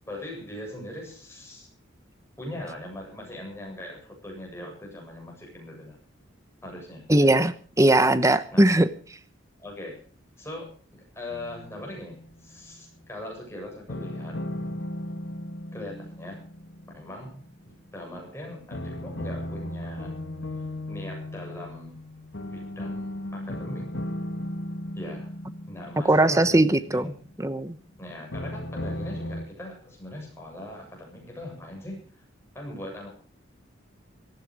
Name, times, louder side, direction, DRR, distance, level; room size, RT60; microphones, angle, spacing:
voice 1, 0.0-1.7 2.4-6.0 6.6-7.1 8.5-8.6 9.6-10.0 10.4-10.7 11.1-14.4 15.7-16.5 16.9-20.2 20.9-22.1 22.5-24.0 25.0-25.3 25.7-27.2 28.0-32.2 32.5-33.1, left 1 dB, 15° left, 0 dB, 7.6 m, -40 dB
voice 2, 7.1-8.9 26.1-27.1 27.4-27.7, right 1 dB, 15° right, 13 dB, 1.0 m, -20 dB
sound 1, 11.3-12.5 13.9-17.9 18.7-27.5 28.3-29.5, left 1 dB, 70° left, 1.6 m, -36 dB
18.0 x 14.5 x 4.9 m, 0.41 s
head